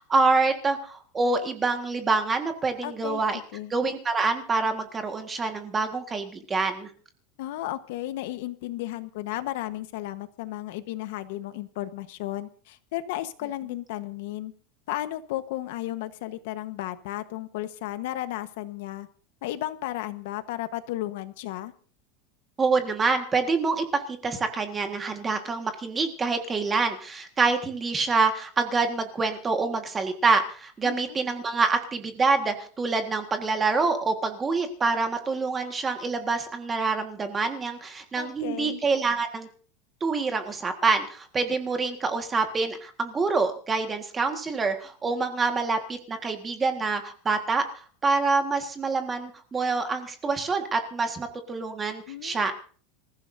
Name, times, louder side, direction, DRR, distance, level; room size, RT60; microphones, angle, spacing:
voice 1, 0.0-3.4 3.7-6.9 22.6-39.5 40.0-52.5, right 4 dB, 15° right, 6 dB, 1.6 m, -26 dB
voice 2, 2.8-3.7 7.4-14.5 14.9-19.1 19.4-21.7 30.8-31.2 38.2-38.8 52.1-52.5, left 14 dB, 60° left, 11 dB, 1.2 m, -34 dB
27.0 x 15.0 x 2.7 m, 0.43 s
supercardioid pair, 175°, 0 cm